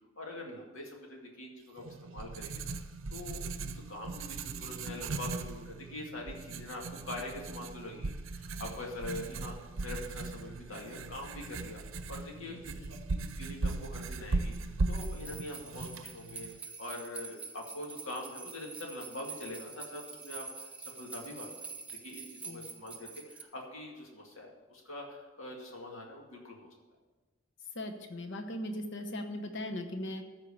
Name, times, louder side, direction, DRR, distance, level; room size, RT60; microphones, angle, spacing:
voice 1, 0.2-9.5 9.8-11.8 12.1-12.7 13.4-16.5 16.8-20.4 20.9-26.7, left 1 dB, 80° left, -1 dB, 2.2 m, -44 dB
Writing, 1.8-16.6, right 3 dB, 70° right, 0.6 m, -38 dB
voice 2, 12.5-12.9 22.5-22.7 27.7-30.2, left 1 dB, 60° left, 5 dB, 1.0 m, -39 dB
sound 1, 14.9-23.4, right 4 dB, 5° right, 0.9 m, -46 dB
14.0 x 4.6 x 6.9 m, 1.2 s
head